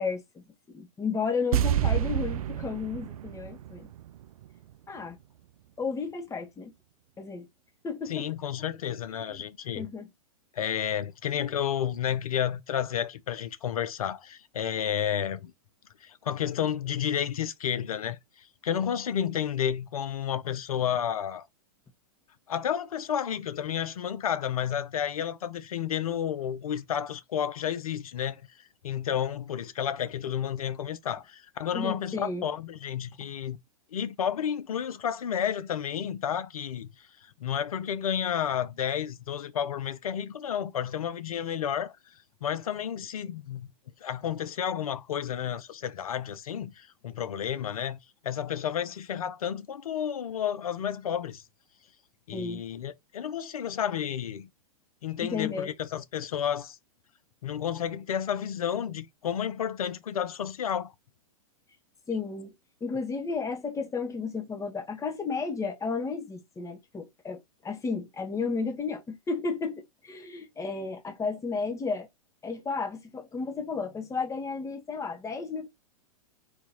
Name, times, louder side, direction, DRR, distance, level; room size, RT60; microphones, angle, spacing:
voice 1, 0.0-3.9 4.9-5.2 5.8-6.7 7.2-7.5 7.8-8.3 9.1-9.4 9.7-10.1 31.7-32.5 52.3-52.6 55.2-55.7 62.1-62.5 62.8-72.1 72.4-75.7, left 4 dB, 15° left, 1.2 m, -33 dB
sound 1, 1.5-4.7 5.0-5.1, right 11 dB, 75° right, 0.4 m, -29 dB
voice 2, 8.1-9.9 10.5-15.5 16.0-18.2 18.6-21.4 22.5-28.4 28.8-33.6 33.9-36.9 37.4-41.9 42.4-43.7 44.0-48.0 48.2-51.4 52.3-54.5 55.0-56.8 57.4-60.9, left 9 dB, 75° left, 0.7 m, -31 dB
4.2 x 2.9 x 4.3 m
hypercardioid pair, 110°, 18 cm